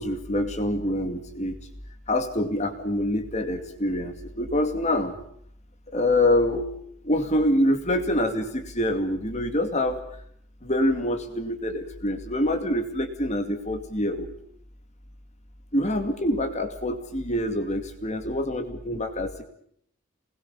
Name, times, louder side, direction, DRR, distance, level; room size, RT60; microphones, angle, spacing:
voice 1, 0.0-1.6 2.1-5.2 5.9-6.7 7.0-10.0 10.6-14.3 15.7-19.4, left 1 dB, 30° left, 7 dB, 2.4 m, -25 dB
29.0 x 21.0 x 7.0 m, 0.67 s
head